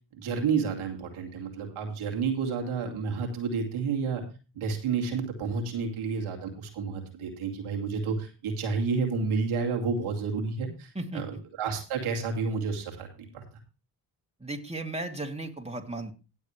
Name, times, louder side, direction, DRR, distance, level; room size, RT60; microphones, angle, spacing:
voice 1, 0.1-4.2 4.6-13.1 13.3-13.4, right 5 dB, 80° right, 2 dB, 2.4 m, -30 dB
voice 2, 14.4-16.1, right 2 dB, 15° right, 2 dB, 2.7 m, -35 dB
18.0 x 7.1 x 3.2 m, 0.32 s
supercardioid pair, 55°, 48 cm